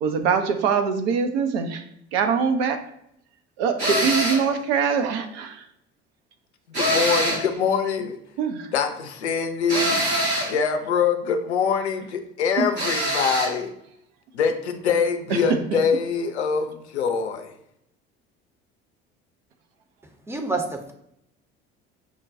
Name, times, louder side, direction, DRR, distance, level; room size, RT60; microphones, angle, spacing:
voice 1, 0.0-1.8 2.1-2.8 3.6-5.5 8.4-8.7 12.6-12.7 15.7-15.8, right 6 dB, 65° right, 6 dB, 0.6 m, -23 dB
sound 1, 3.8-4.5 6.7-7.5 9.7-10.6 12.8-13.5, equal, 85° right, 1.4 m, -24 dB
voice 2, 6.7-8.2 8.7-10.1 10.4-13.7 14.3-17.5, left 6 dB, 85° left, 6 dB, 0.5 m, -24 dB
voice 3, 20.3-20.9, right 3 dB, 10° right, 3 dB, 0.6 m, -28 dB
5.9 x 2.2 x 2.5 m, 0.75 s
figure-of-eight pair, 60°, 33 cm